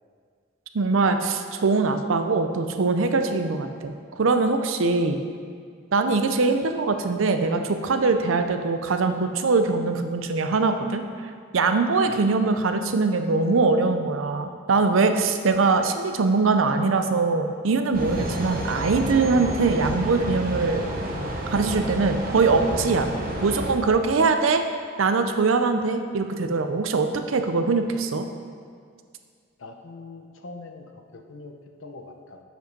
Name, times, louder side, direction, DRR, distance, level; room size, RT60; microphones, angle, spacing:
voice 1, 0.7-5.2 5.9-11.0 11.5-20.9 21.5-23.1 23.4-24.6 25.0-28.3, right 4 dB, 85° right, 7 dB, 0.6 m, -22 dB
sound 1, 17.9-23.7, right 1 dB, 45° right, 1.0 m, -30 dB
voice 2, 29.6-32.4, left 3 dB, 80° left, 4 dB, 0.8 m, -42 dB
7.7 x 5.2 x 5.3 m, 2.1 s
head